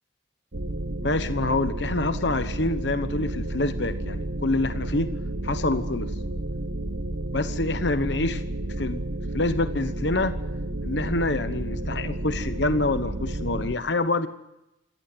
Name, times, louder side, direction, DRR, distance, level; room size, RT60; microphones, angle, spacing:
sound 1, 0.5-13.7, right 1 dB, 75° right, 1.2 m, -31 dB
voice 1, 1.0-5.1 5.4-6.1 7.3-8.4 8.8-9.0 9.3-10.4 10.8-14.3, left 2 dB, 65° left, 11 dB, 1.1 m, -26 dB
25.5 x 18.0 x 7.9 m, 0.91 s
head